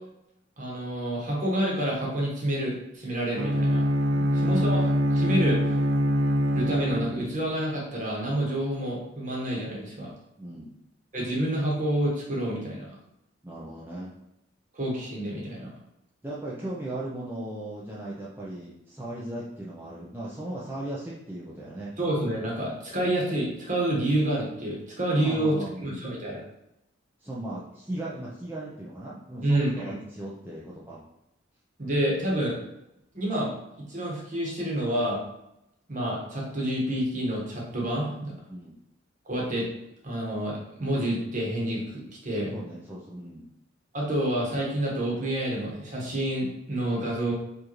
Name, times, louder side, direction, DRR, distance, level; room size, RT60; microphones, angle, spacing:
voice 1, 0.6-3.8 4.3-5.6 6.5-10.1 11.1-13.0 14.7-15.7 22.0-25.5 25.8-26.4 29.4-30.0 31.8-32.6 33.1-33.5 33.9-35.2 35.9-38.3 39.2-39.7 40.0-42.5 43.9-47.3, right 1 dB, 40° right, -3 dB, 1.1 m, -28 dB
Bowed string instrument, 3.3-7.5, equal, 75° right, 0.5 m, -24 dB
voice 2, 10.4-10.7 13.4-14.1 16.2-21.9 23.0-23.1 25.2-26.1 27.2-31.0 38.5-38.8 42.5-43.4, right 1 dB, 10° right, -6 dB, 0.4 m, -37 dB
4.8 x 2.6 x 3.0 m, 0.86 s
head